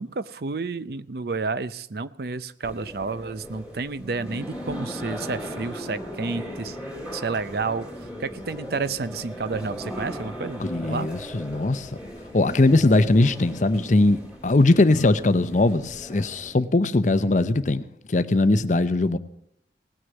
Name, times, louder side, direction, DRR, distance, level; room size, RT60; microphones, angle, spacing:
voice 1, 0.0-6.8 7.1-7.9 8.2-11.1, right 4 dB, 55° right, 15 dB, 0.5 m, -30 dB
sound 1, 2.6-16.5, equal, 5° right, 3.0 m, -38 dB
voice 2, 10.6-11.9 12.3-17.8 18.1-19.2, left 2 dB, 40° left, 13 dB, 0.6 m, -20 dB
18.5 x 6.3 x 8.1 m, 0.74 s
head